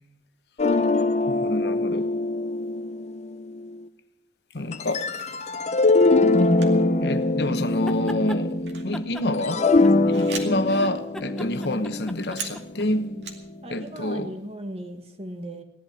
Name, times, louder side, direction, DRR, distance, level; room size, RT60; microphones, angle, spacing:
sound 1, 0.6-3.8 4.7-9.0 9.3-13.5, left 2 dB, 40° left, 0.7 m, -23 dB
voice 1, 1.3-2.1 4.5-5.4 7.0-9.7 10.1-13.1 13.7-14.4, left 1 dB, 65° left, 1.0 m, -28 dB
sound 2, 5.1-5.7 6.6-6.9 7.1-7.3 7.7-10.8 11.1-11.2 11.4-13.5 13.8-14.3, right 5 dB, 80° right, 2.3 m, -40 dB
sound 3, 7.7-8.4 8.9-10.3 10.6-12.9, equal, 5° left, 0.8 m, -39 dB
voice 2, 13.6-15.6, right 1 dB, 35° right, 1.5 m, -37 dB
17.0 x 11.5 x 6.3 m
head